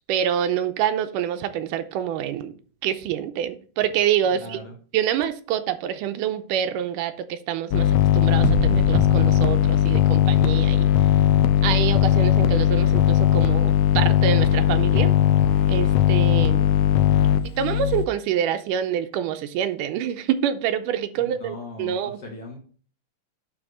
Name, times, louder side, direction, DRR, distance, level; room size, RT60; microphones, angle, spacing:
voice 1, 0.1-2.5 2.8-4.6 4.9-10.9 11.6-15.1 15.7-16.7 17.6-22.2, right 9 dB, 80° right, 2.2 m, -26 dB
voice 2, 4.3-4.8 21.2-22.6, left 3 dB, 55° left, 2.0 m, -39 dB
sound 1, 7.7-18.1, left 10 dB, 85° left, 1.7 m, -18 dB
sound 2, 8.4-10.5, right 2 dB, 60° right, 1.8 m, -27 dB
9.9 x 3.4 x 6.2 m
omnidirectional pair, 3.9 m